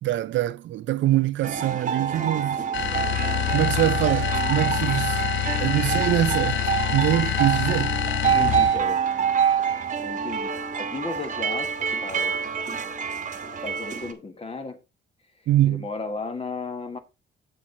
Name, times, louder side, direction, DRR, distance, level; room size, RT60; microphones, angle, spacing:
voice 1, 0.0-2.6 3.5-5.2 5.6-8.0 15.5-15.9, right 14 dB, 70° right, 0.5 m, -24 dB
sound 1, 1.4-14.1, right 7 dB, 40° right, 1.3 m, -26 dB
sound 2, 2.7-8.9, left 14 dB, 70° left, 0.4 m, -26 dB
voice 2, 8.2-9.0 10.0-12.3 13.6-14.8 15.7-17.0, left 4 dB, 30° left, 1.6 m, -34 dB
7.6 x 6.4 x 4.0 m
cardioid pair, 90°, 20 cm